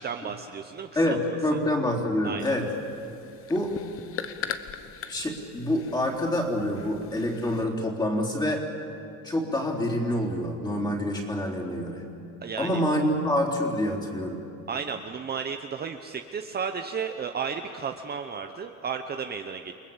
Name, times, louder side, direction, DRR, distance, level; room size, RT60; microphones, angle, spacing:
voice 1, 0.0-1.2 2.2-2.6 12.4-12.8 14.7-19.7, right 6 dB, 30° right, 6 dB, 0.9 m, -33 dB
voice 2, 1.0-2.7 3.5-3.8 5.1-8.7 9.2-12.0 12.6-14.5, left 1 dB, 15° left, -2 dB, 3.7 m, -27 dB
sound 1, 2.4-7.7, left 8 dB, 45° left, 1.2 m, -40 dB
29.5 x 20.5 x 7.3 m, 2.6 s
cardioid pair, 145°, 31 cm